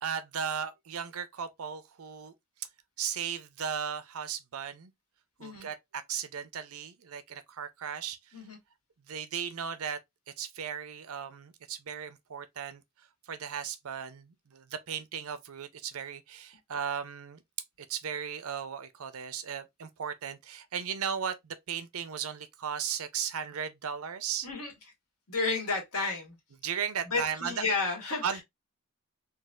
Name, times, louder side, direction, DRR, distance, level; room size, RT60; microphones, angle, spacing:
voice 1, 0.0-2.3 3.0-4.9 5.4-8.4 9.1-10.0 10.4-12.8 13.3-17.4 17.9-24.5 26.6-27.6 28.2-28.4, right 7 dB, 80° right, 0.6 m, -36 dB
voice 2, 25.3-26.4 27.0-28.4, left 3 dB, 80° left, 1.5 m, -32 dB
3.9 x 2.3 x 2.4 m
head